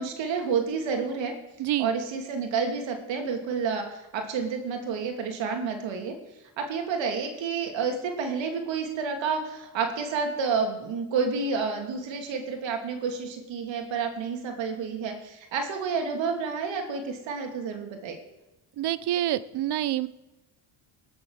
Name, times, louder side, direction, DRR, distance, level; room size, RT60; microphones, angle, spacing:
voice 1, 0.0-1.3 1.8-6.1 6.6-18.2, right 5 dB, 75° right, 3 dB, 2.8 m, -30 dB
voice 2, 1.6-1.9 18.8-20.1, right 13 dB, 60° right, 17 dB, 0.8 m, -27 dB
19.5 x 7.5 x 6.4 m, 1.0 s
cardioid pair, 90°, 45 cm